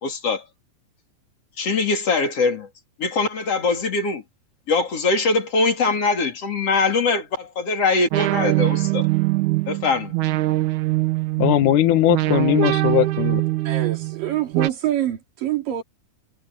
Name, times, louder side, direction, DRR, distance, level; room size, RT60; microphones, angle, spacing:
voice 1, 0.0-0.4 1.6-2.7 3.0-4.2 4.7-9.0 9.7-10.1, left 4 dB, 45° left, 4.0 m, -22 dB
sound 1, 8.1-14.7, right 18 dB, 70° right, 2.2 m, -22 dB
voice 2, 11.4-13.4, left 12 dB, 70° left, 2.5 m, -19 dB
voice 3, 13.6-15.8, right 12 dB, 90° right, 4.3 m, -25 dB
omnidirectional pair, 3.8 m